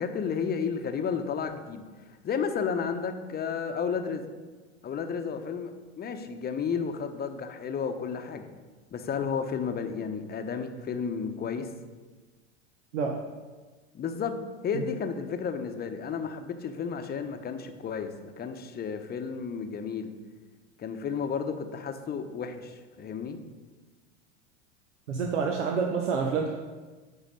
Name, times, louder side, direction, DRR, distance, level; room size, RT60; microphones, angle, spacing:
voice 1, 0.0-1.8 2.2-4.3 4.8-8.5 8.9-11.7 13.9-14.4 14.6-20.1 20.8-23.4, left 6 dB, 25° left, 7 dB, 0.8 m, -32 dB
voice 2, 25.1-26.5, right 5 dB, 90° right, 3 dB, 0.8 m, -27 dB
9.2 x 4.0 x 5.3 m, 1.3 s
hypercardioid pair, 90°, 35 cm